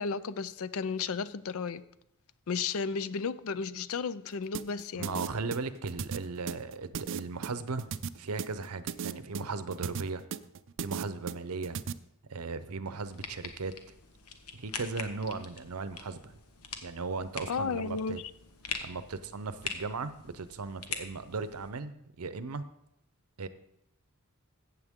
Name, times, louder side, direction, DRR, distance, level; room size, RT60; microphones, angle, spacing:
voice 1, 0.0-1.8 2.5-5.2 17.5-18.3, left 5 dB, 70° left, 0.5 m, -33 dB
sound 1, 4.5-11.9, right 7 dB, 60° right, 0.4 m, -37 dB
voice 2, 4.9-7.9 8.2-10.2 10.8-11.8 12.3-13.7 14.5-16.4 16.8-18.2 18.8-22.7 23.4-23.5, right 4 dB, 85° right, 0.7 m, -37 dB
sound 2, 13.0-21.7, left 5 dB, 85° left, 1.2 m, -43 dB
14.5 x 8.2 x 3.7 m
head